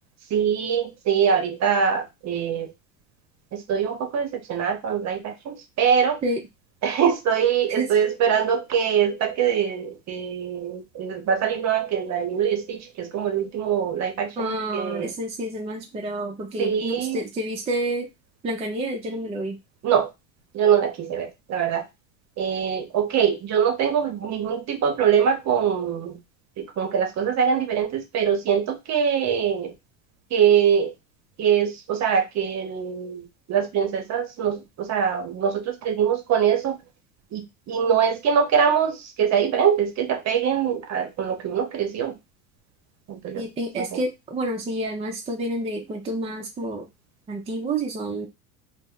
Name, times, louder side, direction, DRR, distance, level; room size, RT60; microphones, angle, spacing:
voice 1, 0.3-2.7 3.5-6.2 6.8-15.1 16.6-17.2 19.8-20.1 20.5-21.8 22.4-26.2 26.6-29.7 30.3-30.9 31.4-36.8 37.3-42.2 43.1-43.5 43.8-44.0, right 7 dB, 40° right, 6 dB, 0.8 m, -23 dB
voice 2, 14.4-18.1 18.4-19.6 43.3-46.9 47.3-48.3, right 1 dB, 15° right, 1 dB, 0.4 m, -29 dB
2.1 x 2.1 x 3.6 m, 0.22 s
hypercardioid pair, 85°, 40 cm